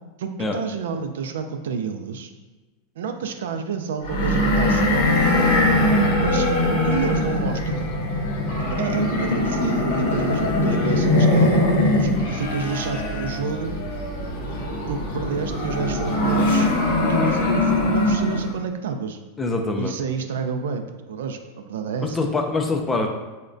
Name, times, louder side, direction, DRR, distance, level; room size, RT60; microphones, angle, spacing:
voice 1, 0.2-2.3 3.0-5.2 6.2-6.5 6.8-7.9 8.7-11.6 12.0-13.8 14.9-16.7 17.1-19.2 19.8-22.2, right 5 dB, 90° right, 7 dB, 0.3 m, -29 dB
sound 1, 4.0-18.6, left 1 dB, 65° left, 0.7 m, -21 dB
voice 2, 19.4-19.9 22.0-23.1, left 3 dB, 10° left, 3 dB, 0.3 m, -24 dB
4.6 x 2.1 x 2.5 m, 1.2 s
supercardioid pair, 155°, 0 cm